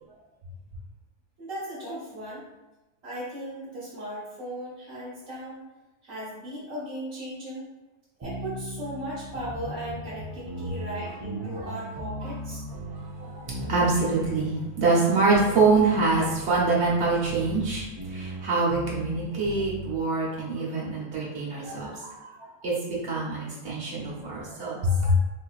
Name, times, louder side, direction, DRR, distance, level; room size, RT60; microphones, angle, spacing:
voice 1, 1.4-2.4 3.0-5.6 6.0-7.7 8.2-12.6, right 1 dB, 80° right, -9 dB, 1.4 m, -37 dB
sound 1, 8.2-20.0, right 1 dB, 30° right, 0.4 m, -38 dB
voice 2, 12.9-25.2, right 3 dB, 60° right, -5 dB, 1.3 m, -25 dB
4.1 x 2.8 x 2.4 m, 1.0 s
omnidirectional pair, 1.3 m